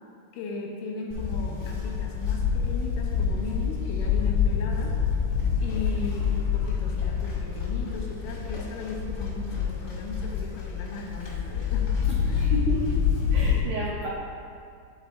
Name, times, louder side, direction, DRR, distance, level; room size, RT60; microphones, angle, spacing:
voice 1, 0.3-4.9 5.6-12.5, left 3 dB, 75° left, -2 dB, 2.1 m, -37 dB
Livestock farm animals working animals, 1.1-13.6, left 7 dB, 55° left, 1.3 m, -27 dB
voice 2, 12.4-12.9 13.3-14.1, right 2 dB, 75° right, -5 dB, 2.1 m, -31 dB
10.5 x 4.2 x 4.4 m, 2.3 s
omnidirectional pair, 5.2 m